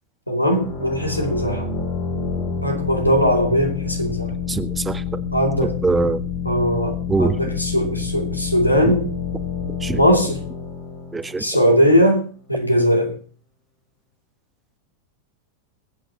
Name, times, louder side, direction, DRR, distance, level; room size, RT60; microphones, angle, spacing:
voice 1, 0.3-1.7 2.6-4.3 5.3-5.8 6.4-9.1 9.9-10.4 11.4-13.2, equal, 85° left, 2 dB, 2.6 m, -19 dB
sound 1, 0.5-12.0, left 6 dB, 45° left, 5.4 m, -28 dB
voice 2, 4.5-5.0 5.6-6.2 7.1-7.4 9.8-10.0 11.1-11.4, right 3 dB, 10° right, 13 dB, 0.7 m, -22 dB
23.5 x 8.6 x 2.9 m, 0.39 s
figure-of-eight pair, 90°, 0 cm